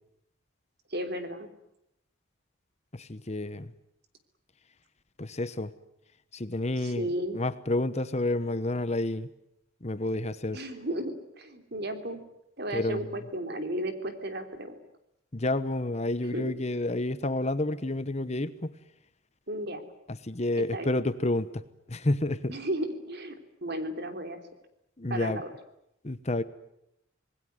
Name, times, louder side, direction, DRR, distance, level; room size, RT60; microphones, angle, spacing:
voice 1, 0.9-1.5 6.8-7.4 10.5-12.2 12.6-14.8 16.3-16.5 19.5-19.8 20.7-20.9 22.5-24.4 25.1-25.5, right 1 dB, 50° right, 7 dB, 3.2 m, -34 dB
voice 2, 2.9-3.7 5.2-5.7 6.3-7.1 7.3-9.3 9.8-10.6 12.7-13.0 15.3-18.7 20.2-21.6 21.9-22.5 25.0-25.4 26.0-26.4, left 2 dB, 30° left, 13 dB, 1.0 m, -29 dB
26.5 x 20.0 x 9.5 m, 0.79 s
head